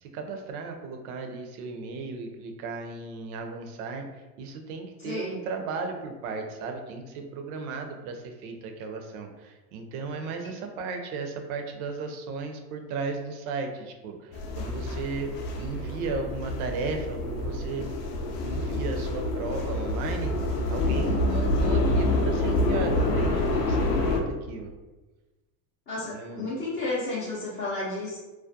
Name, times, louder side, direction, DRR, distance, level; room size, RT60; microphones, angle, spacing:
voice 1, 0.0-4.1 4.4-15.3 15.6-17.9 18.4-20.3 20.7-24.7 26.1-26.5, right 4 dB, 70° right, 4 dB, 0.6 m, -35 dB
voice 2, 5.0-5.3 10.4-10.5 25.9-28.2, left 2 dB, 25° left, -8 dB, 0.4 m, -32 dB
sound 1, 14.3-24.2, left 2 dB, 85° left, 0.5 m, -27 dB
2.3 x 2.1 x 2.5 m, 1.2 s
supercardioid pair, 105°, 47 cm